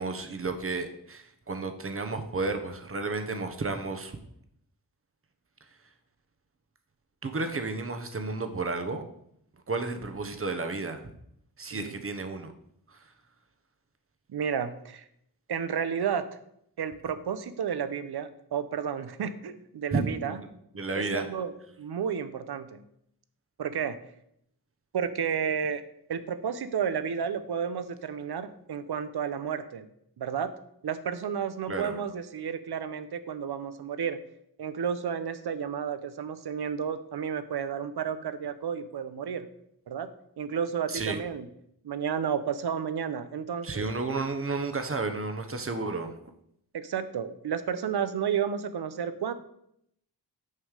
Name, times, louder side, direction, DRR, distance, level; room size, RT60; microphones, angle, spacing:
voice 1, 0.0-4.2 7.2-9.0 9.7-11.0 11.6-12.5 12.9-13.0 19.9-20.4 20.7-21.3 31.7-31.9 40.9-41.2 43.6-46.1, right 3 dB, 35° right, 7 dB, 1.0 m, -32 dB
voice 2, 14.3-15.0 15.5-16.3 16.8-20.4 21.0-21.5 21.8-22.8 23.6-24.0 24.9-25.8 26.1-29.9 30.2-30.5 30.8-34.2 34.6-39.5 39.9-40.1 40.4-41.5 41.8-43.9 46.7-49.3, right 7 dB, 70° right, 13 dB, 0.8 m, -32 dB
6.6 x 5.4 x 6.5 m, 0.73 s
wide cardioid pair, 125°, 40 cm